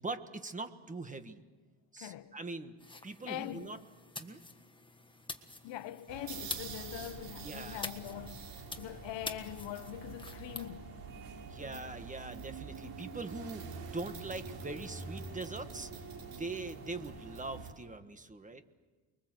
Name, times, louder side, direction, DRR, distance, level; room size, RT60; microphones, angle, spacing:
voice 1, 0.0-1.4 1.9-2.7 3.0-3.8 4.2-4.4 7.4-7.9 11.4-16.0 16.4-18.6, right 3 dB, 15° right, 1.4 m, -42 dB
voice 2, 2.0-2.4 3.3-3.8 5.6-11.0, left 13 dB, 65° left, 1.1 m, -43 dB
sound 1, 2.8-10.7, left 3 dB, 10° left, 1.6 m, -47 dB
sound 2, 6.1-17.7, right 5 dB, 60° right, 5.8 m, -46 dB
29.5 x 22.5 x 7.8 m
cardioid pair, 140°, 47 cm